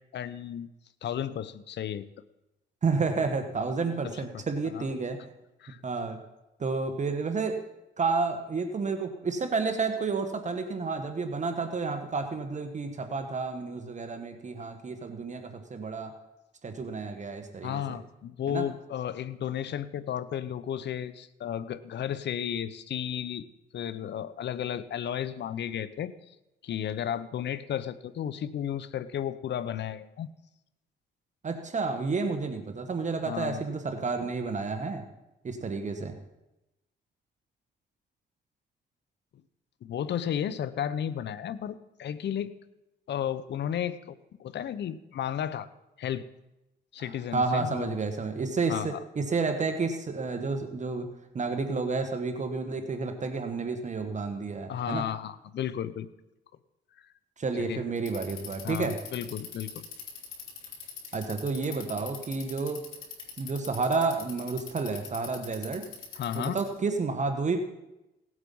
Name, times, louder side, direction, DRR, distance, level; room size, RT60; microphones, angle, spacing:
voice 1, 0.1-0.7 1.0-2.0 4.0-4.4 4.7-4.9 5.6-5.8 17.6-23.5 23.7-26.1 26.6-30.3 33.3-33.6 39.8-42.5 43.1-45.7 46.0-46.2 46.9-48.0 48.7-49.0 54.7-56.1 57.6-57.8 58.6-59.9 66.2-66.6, left 9 dB, 60° left, 15 dB, 0.8 m, -33 dB
voice 2, 2.8-5.2 5.8-6.2 6.6-7.6 8.0-16.1 16.6-18.0 18.5-18.7 31.4-35.1 35.4-36.1 47.0-55.0 57.4-59.0 61.1-62.8 63.4-65.9 66.3-67.6, right 4 dB, 35° right, 7 dB, 1.4 m, -30 dB
Bicycle, 58.0-66.8, left 6 dB, 85° left, 3.1 m, -42 dB
17.5 x 8.0 x 5.5 m, 0.94 s
cardioid pair, 90°, 20 cm